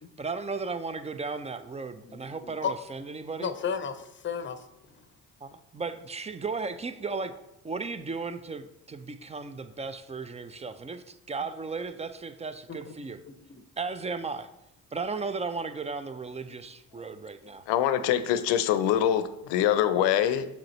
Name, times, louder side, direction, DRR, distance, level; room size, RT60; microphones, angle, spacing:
voice 1, 0.2-3.5 5.4-7.3 7.6-13.2 13.8-14.5 14.9-17.6, right 4 dB, 15° right, 11 dB, 0.3 m, -35 dB
voice 2, 2.0-2.7 3.4-4.6 4.9-5.0 12.7-12.9 13.3-13.6, left 7 dB, 25° left, 11 dB, 0.6 m, -34 dB
voice 3, 17.7-20.5, left 10 dB, 70° left, 12 dB, 0.6 m, -24 dB
6.6 x 4.9 x 3.1 m, 0.89 s
hypercardioid pair, 45°, 45 cm